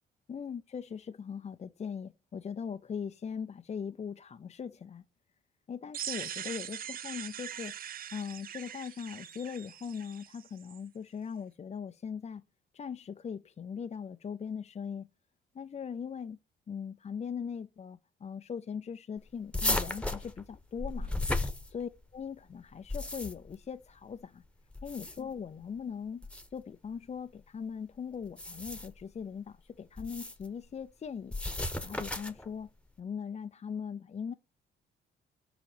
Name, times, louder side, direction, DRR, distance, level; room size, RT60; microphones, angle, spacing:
voice 1, 0.3-5.0 5.7-7.7 8.1-12.4 12.7-15.1 15.5-16.4 16.7-21.1 21.7-24.4 24.8-31.3 31.8-32.7 33.0-34.3, left 7 dB, 35° left, 0.5 m, -40 dB
sound 1, 5.9-10.8, right 10 dB, 45° right, 0.4 m, -42 dB
sound 2, 19.5-22.2 22.7-23.6 24.7-25.4 26.2-26.5 28.2-29.0 30.0-30.5 31.3-32.5, left 2 dB, 5° left, 1.1 m, -34 dB
7.7 x 5.0 x 6.6 m
cardioid pair, 90°, 20 cm